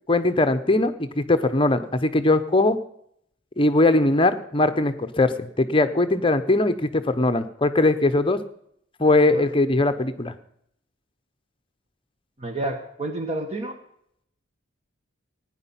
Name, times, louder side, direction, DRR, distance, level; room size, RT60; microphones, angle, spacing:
voice 1, 0.1-2.8 3.6-8.4 9.0-10.3, left 2 dB, 25° left, 9 dB, 0.8 m, -20 dB
voice 2, 12.4-13.8, right 2 dB, 35° right, 5 dB, 1.3 m, -30 dB
17.0 x 10.0 x 5.7 m, 0.71 s
head